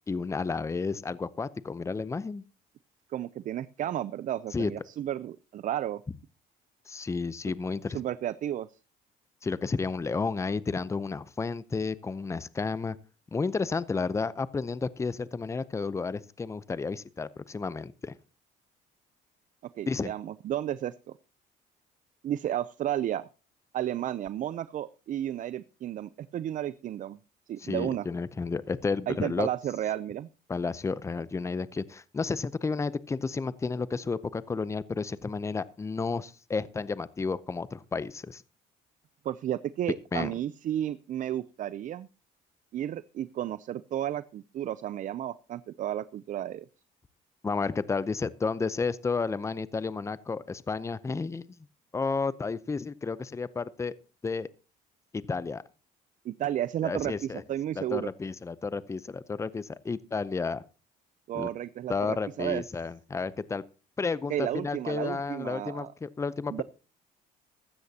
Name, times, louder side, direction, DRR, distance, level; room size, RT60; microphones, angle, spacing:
voice 1, 0.1-2.4 4.5-4.7 6.9-8.0 9.4-13.0 13.3-18.2 19.9-20.1 27.6-29.5 30.5-38.4 40.1-40.3 47.4-51.7 51.9-53.9 54.2-54.5 55.1-55.6 56.8-57.4 57.8-60.6 61.3-61.5 61.9-63.6 64.0-66.6, left 4 dB, 15° left, 17 dB, 0.6 m, -32 dB
voice 2, 3.1-6.0 7.9-8.7 19.8-21.2 22.2-23.3 23.7-27.2 27.5-28.1 29.1-30.3 39.2-42.1 42.7-46.6 56.2-58.1 61.3-62.6 64.3-65.9 66.5-66.6, right 11 dB, 50° right, 16 dB, 0.5 m, -32 dB
15.0 x 12.5 x 2.8 m, 0.32 s
cardioid pair, 110°, 17 cm